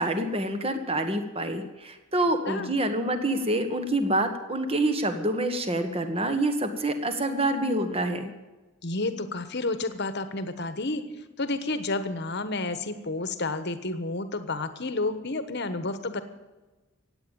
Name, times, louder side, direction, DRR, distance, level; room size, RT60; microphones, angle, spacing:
voice 1, 0.0-8.3, right 1 dB, 25° right, 8 dB, 1.5 m, -27 dB
voice 2, 8.8-11.0 11.4-16.2, left 2 dB, 50° left, 10 dB, 1.3 m, -30 dB
16.0 x 9.1 x 9.1 m, 1.2 s
head